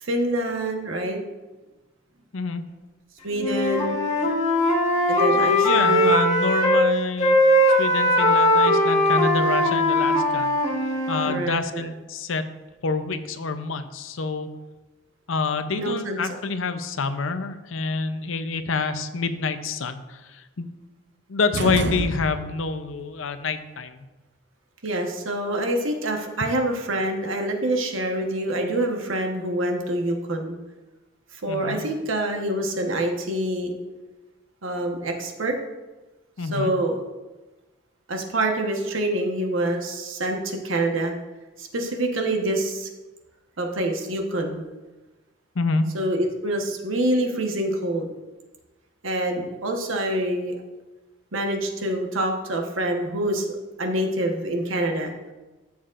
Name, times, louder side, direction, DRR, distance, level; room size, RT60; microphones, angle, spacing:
voice 1, 0.0-1.2 3.2-4.0 5.1-6.2 11.2-11.9 15.7-16.4 24.8-30.6 31.3-33.7 34.6-35.5 36.4-37.0 38.1-41.1 41.6-42.9 43.6-44.6 45.9-48.1 49.0-50.5 51.3-55.1, right 1 dB, 85° right, 3 dB, 1.2 m, -26 dB
voice 2, 2.3-2.6 5.4-7.4 7.8-10.5 11.1-12.5 12.8-14.5 15.3-20.7 21.3-24.0 31.5-31.8 36.4-36.7 45.6-45.9, left 4 dB, 80° left, 10 dB, 0.6 m, -27 dB
Wind instrument woodwind instrument, 3.4-6.9 7.2-11.4, left 1 dB, 35° left, 1.7 m, -20 dB
sound 1, 21.5-22.8, right 2 dB, 55° right, 0.6 m, -28 dB
13.0 x 7.1 x 2.5 m, 1.2 s
head